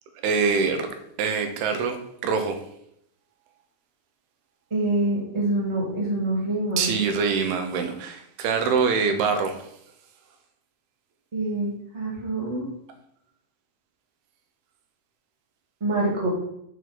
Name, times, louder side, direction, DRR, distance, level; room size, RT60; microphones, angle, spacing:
voice 1, 0.2-0.9 1.2-2.6 6.8-9.6, right 5 dB, 85° right, 6 dB, 2.9 m, -24 dB
voice 2, 4.7-6.9 11.3-12.7 15.8-16.3, right 2 dB, 15° right, -4 dB, 1.2 m, -26 dB
6.6 x 4.8 x 5.9 m, 0.75 s
omnidirectional pair, 4.4 m